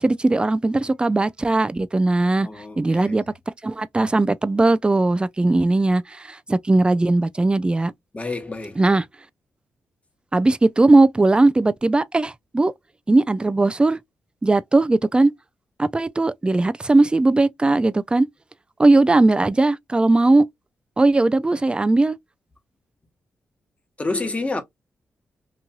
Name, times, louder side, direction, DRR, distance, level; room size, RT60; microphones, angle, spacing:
voice 1, 0.0-2.5 2.8-3.2 3.6-7.9 8.8-9.0 10.3-12.7 13.1-14.0 14.4-15.3 15.8-18.3 18.8-20.5 21.0-22.2, right 2 dB, 20° right, 0.4 m, -18 dB
voice 2, 2.4-3.1 8.1-8.8 24.0-24.6, left 3 dB, 25° left, 1.2 m, -28 dB
3.0 x 2.6 x 2.2 m
supercardioid pair, 45°, 5 cm